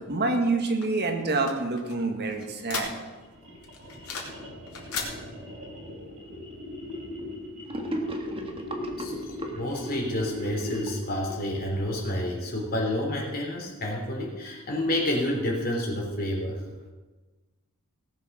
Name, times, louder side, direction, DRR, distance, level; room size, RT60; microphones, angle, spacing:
voice 1, 0.0-2.9, right 3 dB, 50° right, 4 dB, 1.8 m, -27 dB
sound 1, 0.8-3.3 3.6-4.4 4.7-5.1, left 5 dB, 80° left, 2.7 m, -36 dB
sound 2, 2.5-11.1, left 1 dB, 85° right, 3.7 m, -39 dB
Gurgling / Sink (filling or washing), 7.7-12.2, right 1 dB, 25° right, 1.5 m, -37 dB
voice 2, 9.5-16.6, left 1 dB, 45° left, -2 dB, 3.6 m, -29 dB
18.0 x 7.3 x 6.2 m, 1.3 s
head